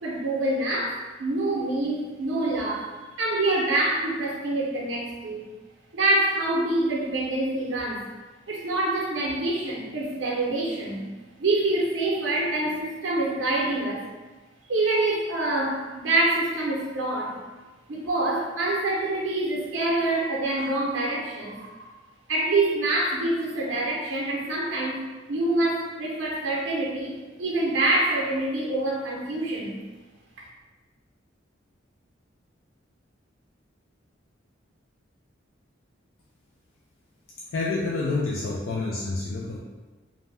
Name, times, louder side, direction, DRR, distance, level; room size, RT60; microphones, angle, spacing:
voice 1, 0.0-2.9 3.2-5.5 5.9-8.1 8.5-11.0 11.4-14.1 14.7-17.4 17.9-21.9 22.3-25.0 25.3-27.1 27.4-29.8, right 2 dB, 80° right, -3 dB, 0.6 m, -26 dB
voice 2, 37.5-39.6, left 3 dB, 90° left, -4 dB, 0.4 m, -28 dB
2.5 x 2.1 x 3.2 m, 1.2 s
head